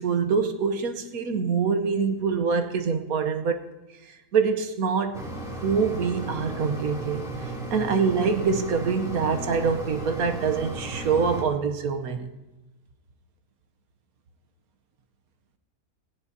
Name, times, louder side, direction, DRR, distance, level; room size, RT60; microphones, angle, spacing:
voice 1, 0.0-3.7 4.3-5.3 5.6-12.3, right 5 dB, 80° right, 7 dB, 1.4 m, -25 dB
Mechanisms, 5.1-11.4, right 1 dB, ahead, 2.8 m, -35 dB
18.5 x 17.5 x 2.8 m, 1.1 s
omnidirectional pair, 1.5 m